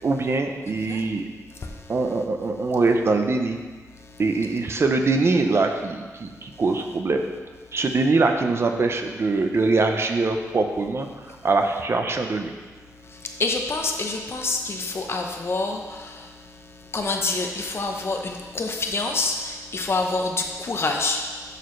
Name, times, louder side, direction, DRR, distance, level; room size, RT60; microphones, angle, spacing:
voice 1, 0.0-1.2 1.9-3.6 4.2-7.2 7.7-12.5, right 3 dB, 45° right, 5 dB, 0.6 m, -23 dB
voice 2, 13.4-16.3 16.9-21.2, left 3 dB, 45° left, 3 dB, 0.8 m, -27 dB
10.5 x 6.6 x 3.2 m, 1.4 s
wide cardioid pair, 155°, 6 cm